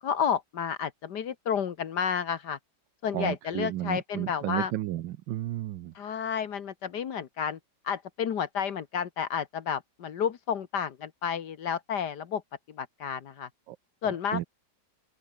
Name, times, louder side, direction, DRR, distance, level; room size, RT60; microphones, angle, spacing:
voice 1, 0.0-2.6 3.0-4.7 6.0-7.6 7.8-12.4 12.7-13.5 14.0-14.5, left 7 dB, 65° left, 1.9 m, -31 dB
voice 2, 3.1-5.9 13.7-13.8 14.3-14.4, right 14 dB, 80° right, 1.4 m, -32 dB
open air
omnidirectional pair, 2.0 m